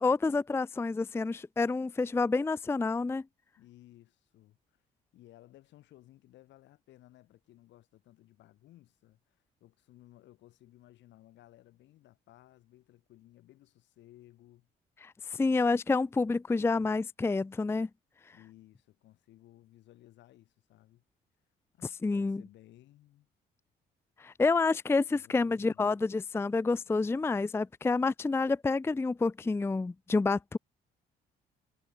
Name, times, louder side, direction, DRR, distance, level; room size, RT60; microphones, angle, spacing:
voice 1, 0.0-3.2 15.0-17.9 22.0-22.4 24.2-30.6, left 3 dB, 15° left, 0.4 m, -28 dB
voice 2, 3.6-4.8 5.1-14.7 18.3-21.0 21.7-23.3 25.1-26.0, left 15 dB, 75° left, 4.1 m, -58 dB
supercardioid pair, 70°, 19 cm